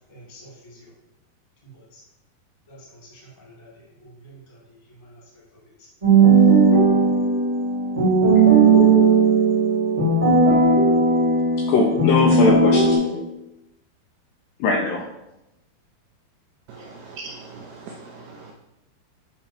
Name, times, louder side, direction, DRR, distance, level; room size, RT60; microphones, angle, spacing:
voice 1, 0.1-0.9 1.6-2.0 2.7-5.2, right 1 dB, 20° left, -5 dB, 1.4 m, -48 dB
sound 1, 6.0-13.0, right 4 dB, 40° right, 0.5 m, -16 dB
voice 2, 11.7-13.2 14.6-15.0, left 3 dB, 80° left, 1 dB, 2.1 m, -21 dB
voice 3, 16.7-18.5, right 3 dB, 85° right, 1 dB, 1.9 m, -40 dB
8.5 x 3.0 x 4.3 m, 0.92 s
omnidirectional pair, 4.4 m